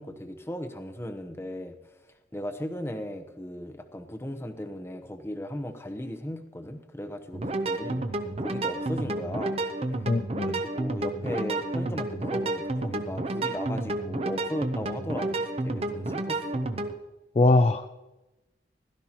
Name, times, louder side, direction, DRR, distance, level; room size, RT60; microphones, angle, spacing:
voice 1, 0.0-1.8 2.3-8.0 8.4-9.6 10.4-16.7, equal, 15° left, 6 dB, 0.8 m, -37 dB
sound 1, 7.3-16.9, right 2 dB, 35° right, 0.7 m, -30 dB
voice 2, 10.1-10.6 17.4-17.9, left 2 dB, 35° left, 8 dB, 0.3 m, -22 dB
16.0 x 12.0 x 3.0 m, 1.0 s
head